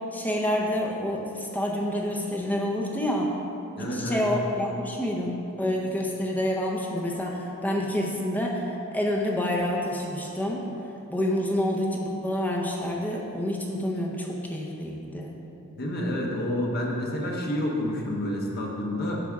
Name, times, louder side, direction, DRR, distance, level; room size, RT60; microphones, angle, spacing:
voice 1, 0.1-3.3 3.8-10.6 11.1-15.4, left 1 dB, 10° left, -1 dB, 0.6 m, -28 dB
voice 2, 3.8-4.3 15.7-19.2, left 1 dB, 45° left, -2 dB, 1.0 m, -29 dB
8.6 x 6.0 x 3.5 m, 2.9 s
head